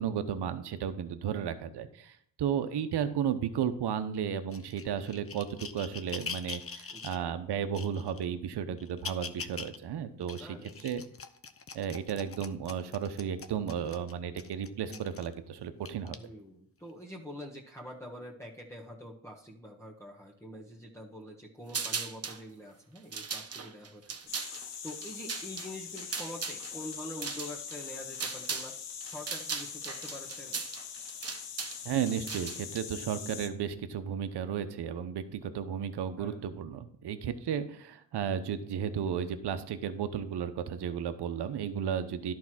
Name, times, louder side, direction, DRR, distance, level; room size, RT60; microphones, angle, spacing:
voice 1, 0.0-10.6 10.8-11.0 11.7-16.2 31.8-42.3, right 8 dB, 70° right, 10 dB, 0.9 m, -34 dB
sound 1, 4.5-7.2 7.7-8.3 8.8-9.8 10.2-15.3 15.9-16.1 16.9-17.0, left 5 dB, 35° left, 0.8 m, -43 dB
voice 2, 6.9-7.2 10.4-11.0 16.1-24.3 24.8-28.7 29.0-30.7 36.2-36.5, equal, 5° left, -4 dB, 1.4 m, -45 dB
sound 2, 21.7-22.4 23.0-28.7 29.0-32.8, right 5 dB, 35° right, 1.1 m, -38 dB
sound 3, 24.3-33.5, left 8 dB, 80° left, 1.2 m, -43 dB
11.0 x 4.7 x 6.1 m, 0.68 s
cardioid pair, 75°, 41 cm